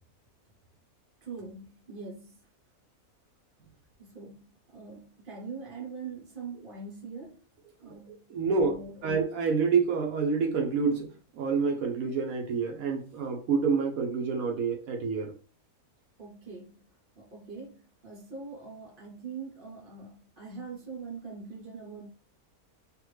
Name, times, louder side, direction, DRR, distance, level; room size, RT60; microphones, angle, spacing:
voice 1, 1.2-2.5 4.0-7.4 7.8-8.3 8.6-9.2 16.2-16.8 17.2-22.1, right 4 dB, 45° right, 0.9 m, -43 dB
voice 2, 8.3-8.8 9.0-15.3, right 5 dB, 75° right, 1.1 m, -28 dB
3.5 x 2.5 x 3.1 m
omnidirectional pair, 1.6 m